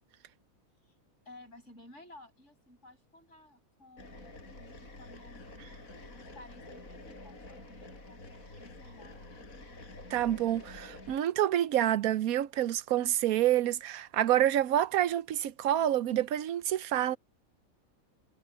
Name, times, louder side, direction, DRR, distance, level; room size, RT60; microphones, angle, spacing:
voice 1, 1.2-9.2, left 1 dB, 55° left, 8.2 m, -55 dB
sound 1, 4.0-11.2, left 2 dB, 80° left, 6.0 m, -49 dB
voice 2, 10.1-17.2, right 12 dB, 85° right, 1.2 m, -28 dB
omnidirectional pair, 1.5 m